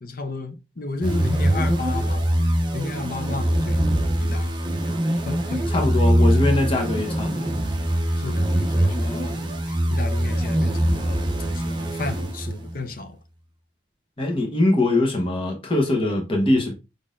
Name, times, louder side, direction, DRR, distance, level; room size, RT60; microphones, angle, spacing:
voice 1, 0.0-3.8 4.2-4.5 5.3-5.9 8.2-13.2, left 3 dB, 45° left, 0.7 m, -33 dB
sound 1, 1.0-12.8, right 1 dB, 25° right, 0.6 m, -23 dB
voice 2, 5.7-7.6 14.2-16.7, left 2 dB, 30° left, 1.0 m, -22 dB
5.1 x 3.8 x 2.5 m
head